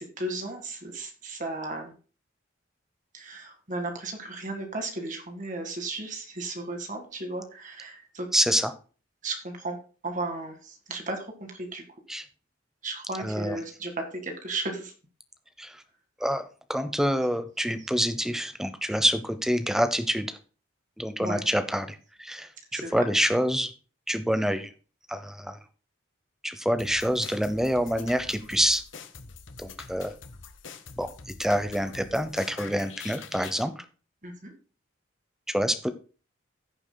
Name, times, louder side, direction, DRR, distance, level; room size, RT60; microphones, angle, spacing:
voice 1, 0.0-1.9 3.1-8.3 9.2-9.8 10.0-11.8 12.8-14.9 21.2-21.4 22.7-23.0 34.2-34.5, right 2 dB, 40° right, 4 dB, 1.8 m, -35 dB
voice 2, 8.3-8.7 12.1-12.2 13.2-13.6 15.6-15.8 16.2-20.3 21.0-23.7 24.1-24.7 25.1-25.6 26.4-28.8 29.6-30.1 31.0-31.1 31.4-33.7 35.5-35.9, equal, ahead, 10 dB, 0.7 m, -27 dB
sound 1, 26.8-33.6, left 5 dB, 65° left, 0.9 m, -45 dB
16.5 x 7.0 x 2.2 m, 0.38 s
head